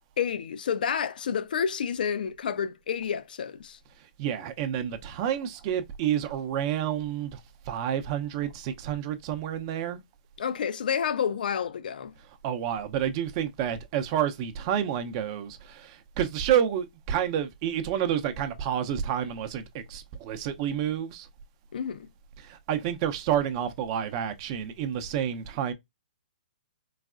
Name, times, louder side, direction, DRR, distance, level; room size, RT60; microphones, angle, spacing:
voice 1, 0.2-3.8 10.4-12.1 21.7-22.1, left 7 dB, 65° left, 0.4 m, -29 dB
voice 2, 4.2-7.4 7.7-10.0 12.4-21.3 22.4-25.7, right 10 dB, 35° right, 0.6 m, -29 dB
4.0 x 2.2 x 2.4 m
hypercardioid pair, 130°, 5 cm